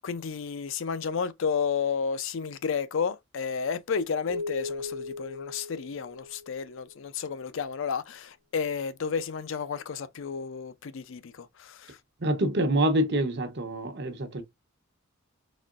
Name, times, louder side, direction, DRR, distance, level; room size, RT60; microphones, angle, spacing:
voice 1, 0.0-12.0, left 6 dB, 65° left, 0.5 m, -32 dB
sound 1, 4.3-6.9, left 3 dB, 90° right, 1.2 m, -37 dB
voice 2, 12.2-14.4, right 1 dB, 55° right, 0.9 m, -26 dB
4.1 x 3.0 x 2.4 m
head